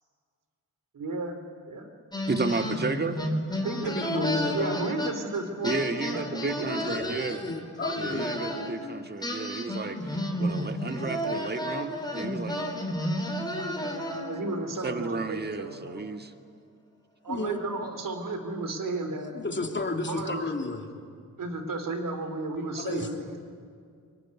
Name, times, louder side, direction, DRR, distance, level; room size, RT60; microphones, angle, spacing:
voice 1, 0.9-1.4 1.7-1.9 3.6-6.9 13.6-16.2 17.2-19.7 20.1-20.5 21.4-23.4, right 2 dB, 60° right, 7 dB, 3.6 m, -34 dB
sound 1, 2.1-5.4 5.6-8.7 9.2-14.5, equal, 10° left, 4.1 m, -32 dB
voice 2, 2.3-3.2 5.6-7.4 7.9-12.8 14.8-16.3, right 3 dB, 25° right, 7 dB, 1.8 m, -32 dB
voice 3, 3.8-4.9 6.8-8.3 17.3-17.6 19.3-20.8 22.8-23.1, left 3 dB, 30° left, 3 dB, 3.1 m, -32 dB
23.5 x 20.5 x 9.8 m, 2.2 s
cardioid pair, 60°, 36 cm